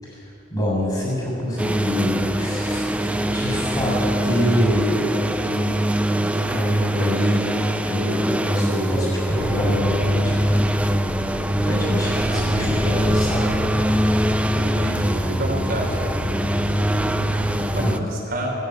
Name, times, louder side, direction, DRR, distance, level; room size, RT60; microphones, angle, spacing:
voice 1, 0.0-5.9 6.2-7.6 7.8-11.0 11.6-13.5 17.3-18.1, equal, 20° left, -3 dB, 7.2 m, -25 dB
sound 1, 1.6-18.0, right 1 dB, 5° right, 0.7 m, -23 dB
sound 2, 9.4-17.9, left 2 dB, 80° left, 1.0 m, -31 dB
voice 2, 14.5-16.0 17.7-18.5, right 1 dB, 50° right, -2 dB, 4.1 m, -29 dB
19.5 x 16.5 x 9.4 m, 2.8 s
head